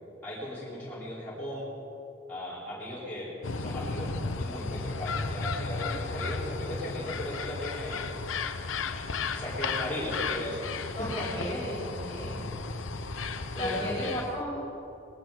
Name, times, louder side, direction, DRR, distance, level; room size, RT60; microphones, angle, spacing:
voice 1, 0.2-1.7 2.3-8.1 9.3-11.3 12.9-13.3 13.5-14.1, left 1 dB, 10° left, -10 dB, 4.6 m, -37 dB
sound 1, 3.4-14.4, left 4 dB, 90° left, 0.8 m, -34 dB
voice 2, 11.0-12.6 13.6-14.6, equal, 25° left, -7 dB, 4.3 m, -35 dB
21.0 x 12.0 x 5.1 m, 2.9 s
head